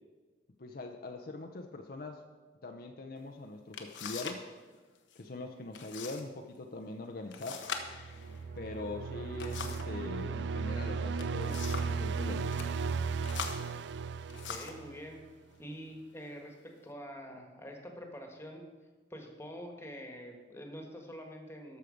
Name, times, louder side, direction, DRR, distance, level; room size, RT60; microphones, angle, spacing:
voice 1, 0.6-2.2 2.6-4.4 5.2-7.6 8.6-12.7, left 2 dB, 55° left, 4 dB, 0.7 m, -42 dB
sound 1, 3.2-3.3 3.7-4.5 4.7-5.2 5.7-6.3 6.6-6.7 7.3-10.0 10.9-12.0 12.4-12.7 13.2-14.9 15.6-15.8 16.4-16.9, left 6 dB, 85° left, 1.0 m, -42 dB
sound 2, 7.8-15.2, right 5 dB, 65° right, 0.4 m, -36 dB
voice 2, 14.3-15.2 15.6-18.6 19.1-21.8, equal, 15° left, 3 dB, 1.5 m, -46 dB
12.5 x 6.5 x 5.2 m, 1.4 s
head